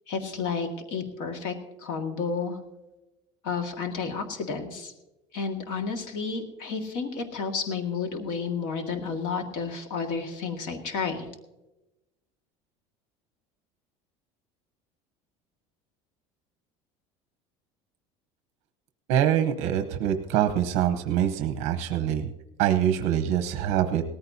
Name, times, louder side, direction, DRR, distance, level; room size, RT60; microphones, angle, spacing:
voice 1, 0.1-2.6 3.4-4.9 5.3-11.3, left 5 dB, 70° left, 4 dB, 1.9 m, -31 dB
voice 2, 19.1-22.3 22.6-24.0, right 10 dB, 55° right, 7 dB, 0.9 m, -24 dB
18.5 x 14.5 x 2.8 m, 0.99 s
cardioid pair, 170°, 14 cm